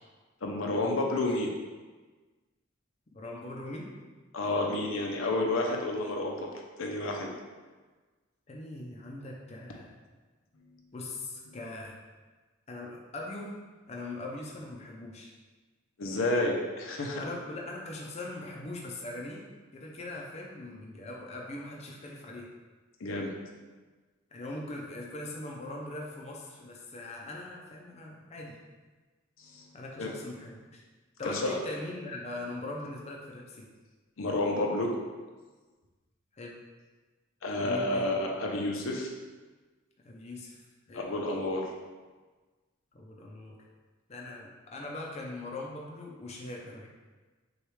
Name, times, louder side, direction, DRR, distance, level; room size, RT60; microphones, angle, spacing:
voice 1, 0.4-1.5 4.3-6.5 6.8-7.3 16.0-17.2 23.0-23.3 29.4-29.6 30.0-30.1 31.2-31.6 34.2-34.9 37.4-39.1 40.9-41.7, left 2 dB, 80° left, 1 dB, 0.6 m, -30 dB
voice 2, 3.1-3.9 8.5-9.9 10.9-11.9 12.7-13.5 13.9-15.3 17.2-22.5 24.3-28.6 29.7-30.8 31.2-33.7 36.3-36.6 37.6-38.2 40.0-40.6 40.9-41.1 42.9-43.6 44.1-46.9, left 2 dB, 30° left, -2 dB, 0.5 m, -41 dB
6.2 x 2.4 x 3.2 m, 1.3 s
head